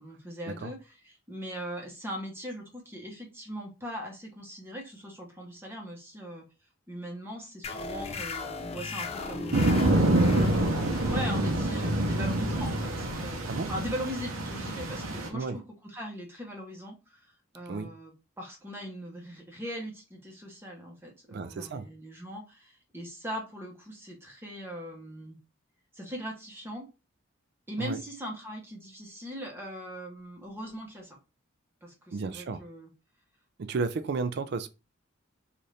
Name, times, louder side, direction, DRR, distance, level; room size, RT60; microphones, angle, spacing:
voice 1, 0.0-6.4 6.9-9.8 11.0-17.2 17.5-25.4 25.9-26.8 27.7-31.2 31.8-32.9, equal, 10° right, 0.9 m, -40 dB
sound 1, 7.6-14.8, left 3 dB, 30° left, 0.4 m, -38 dB
sound 2, 9.5-15.3, right 1 dB, 85° right, 0.7 m, -26 dB
voice 2, 21.3-21.9 27.8-28.0 32.1-32.6 33.6-34.7, right 4 dB, 55° right, 0.3 m, -33 dB
2.7 x 2.5 x 3.2 m
head